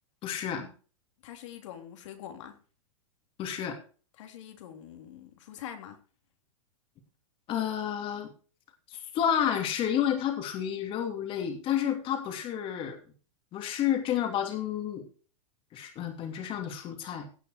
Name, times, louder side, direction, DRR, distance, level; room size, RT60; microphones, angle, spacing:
voice 1, 0.2-0.7 3.4-3.8 7.5-8.3 8.9-13.0 13.5-15.1 15.7-17.3, left 9 dB, 30° left, 5 dB, 2.9 m, -30 dB
voice 2, 1.2-2.5 4.2-6.0, left 10 dB, 65° left, 5 dB, 3.2 m, -44 dB
17.0 x 5.8 x 4.6 m, 0.37 s
supercardioid pair, 140°, 17 cm